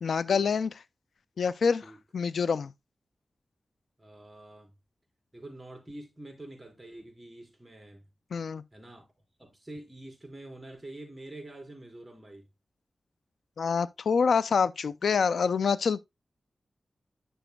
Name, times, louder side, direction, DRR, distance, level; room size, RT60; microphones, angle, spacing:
voice 1, 0.0-0.7 1.4-2.7 8.3-8.6 13.6-16.0, left 5 dB, 90° left, 0.3 m, -26 dB
voice 2, 4.0-4.7 5.3-8.0 8.7-9.1 9.4-12.4, right 1 dB, 15° right, 4.4 m, -46 dB
9.9 x 6.9 x 2.3 m
cardioid pair, 55°, 0 cm